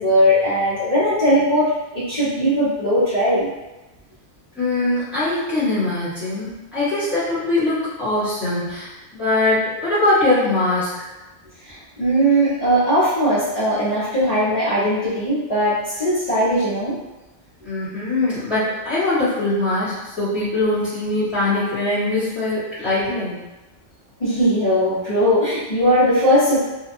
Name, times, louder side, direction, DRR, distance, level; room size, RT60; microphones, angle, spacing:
voice 1, 0.0-3.5 11.6-17.0 24.2-26.7, equal, 35° left, -15 dB, 1.0 m, -19 dB
voice 2, 4.5-10.9 17.6-23.4, left 2 dB, ahead, -13 dB, 1.0 m, -22 dB
2.8 x 2.2 x 2.5 m, 1.1 s
omnidirectional pair, 1.3 m